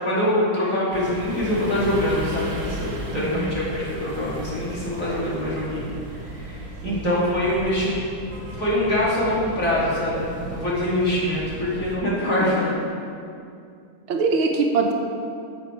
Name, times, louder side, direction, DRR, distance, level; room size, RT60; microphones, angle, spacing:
voice 1, 0.0-5.9 6.2-8.0 8.6-12.7, left 1 dB, 40° left, -8 dB, 2.8 m, -24 dB
sound 1, 0.9-12.0, right 2 dB, 60° right, 1.7 m, -35 dB
voice 2, 3.1-3.5 6.8-7.1 14.1-14.9, right 4 dB, 80° right, 2 dB, 1.7 m, -23 dB
11.0 x 6.9 x 4.6 m, 2.4 s
omnidirectional pair, 2.3 m